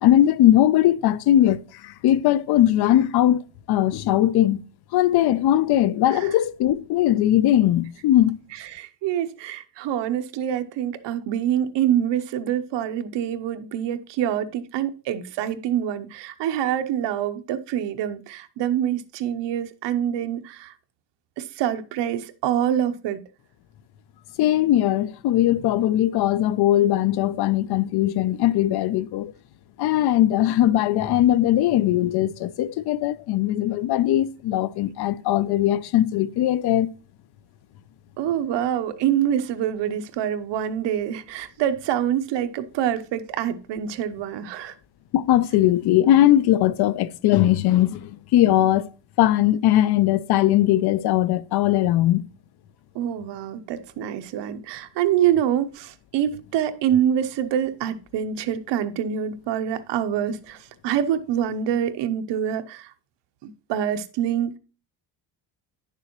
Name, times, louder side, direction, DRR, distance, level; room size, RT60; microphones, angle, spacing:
voice 1, 0.0-3.4 3.7-4.6 4.9-8.3 24.4-29.3 29.8-36.9 45.1-48.9 49.2-52.2, left 13 dB, 65° left, 0.6 m, -20 dB
voice 2, 8.7-20.7 21.4-23.2 38.2-44.7 52.9-62.9 63.4-64.6, right 10 dB, 80° right, 0.9 m, -26 dB
10.0 x 6.8 x 3.0 m
cardioid pair, 140°, 42 cm